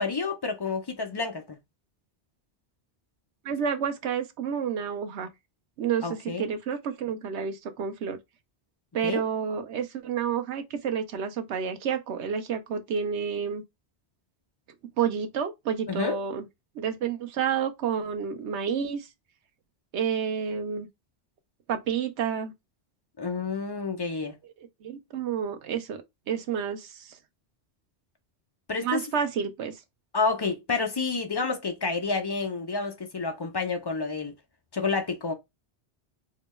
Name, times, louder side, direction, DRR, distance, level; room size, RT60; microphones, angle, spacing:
voice 1, 0.0-1.6 6.0-6.5 9.0-9.2 15.9-16.2 23.2-24.4 28.7-29.0 30.1-34.3 34.7-35.3, left 4 dB, 40° left, 0.3 m, -29 dB
voice 2, 3.4-5.3 5.8-8.2 8.9-13.6 15.0-16.5 16.8-19.1 19.9-20.9 21.7-22.5 24.8-27.2 28.8-29.7, right 7 dB, 90° right, 1.0 m, -30 dB
3.7 x 2.2 x 3.0 m
omnidirectional pair, 1.1 m